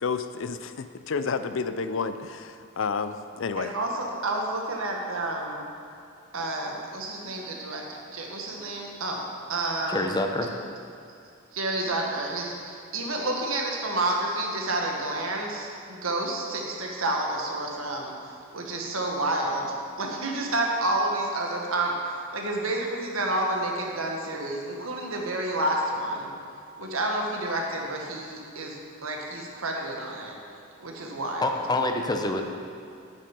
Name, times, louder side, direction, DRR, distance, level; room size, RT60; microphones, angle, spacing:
voice 1, 0.0-3.7, left 5 dB, 65° left, 11 dB, 0.5 m, -30 dB
voice 2, 3.6-5.6 6.3-9.2 9.5-10.0 11.5-26.3 26.8-30.4 30.8-31.6, right 2 dB, 80° right, 0 dB, 1.6 m, -30 dB
voice 3, 9.9-10.5 31.4-32.4, left 2 dB, 20° left, 4 dB, 0.7 m, -26 dB
9.1 x 8.9 x 5.3 m, 2.6 s
head